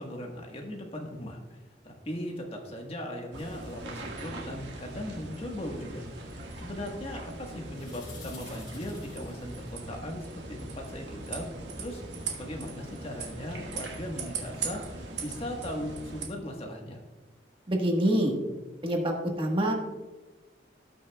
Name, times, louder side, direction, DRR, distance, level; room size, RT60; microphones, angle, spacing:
voice 1, 0.0-1.4 1.8-11.5 11.8-12.0 12.3-17.0, equal, 35° left, 1 dB, 1.4 m, -38 dB
sound 1, 3.3-16.3, right 3 dB, 85° right, 1.5 m, -40 dB
sound 2, 3.4-4.2 7.7-9.7, left 5 dB, 80° left, 2.8 m, -51 dB
voice 2, 17.7-18.4 18.8-19.7, right 1 dB, 30° right, 1 dB, 1.4 m, -26 dB
18.0 x 6.2 x 2.3 m, 1.2 s
head